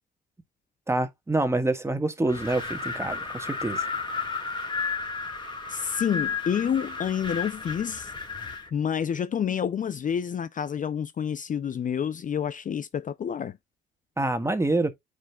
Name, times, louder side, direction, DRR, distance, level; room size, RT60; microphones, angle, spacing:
voice 1, 0.9-3.8 14.2-14.9, right 2 dB, 15° right, 1.5 m, -26 dB
Wind, 2.3-8.7, left 5 dB, 25° left, 2.3 m, -33 dB
voice 2, 5.7-8.1 8.7-13.6, left 8 dB, 40° left, 0.5 m, -28 dB
9.2 x 5.1 x 2.3 m
cardioid pair, 90°, 20 cm